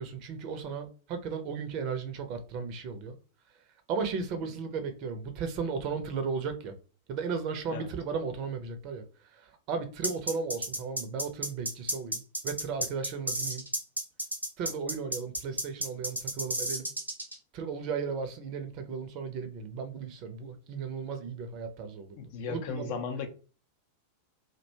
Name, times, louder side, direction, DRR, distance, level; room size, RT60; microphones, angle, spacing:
voice 1, 0.0-3.1 3.9-6.7 7.1-13.6 14.6-16.9 17.5-22.2 22.5-23.0, right 5 dB, 40° right, 0.5 m, -35 dB
sound 1, 10.0-17.4, right 1 dB, 85° right, 0.7 m, -32 dB
voice 2, 22.2-23.3, left 5 dB, 50° left, 0.5 m, -35 dB
2.5 x 2.2 x 2.7 m
figure-of-eight pair, 90°, 0 cm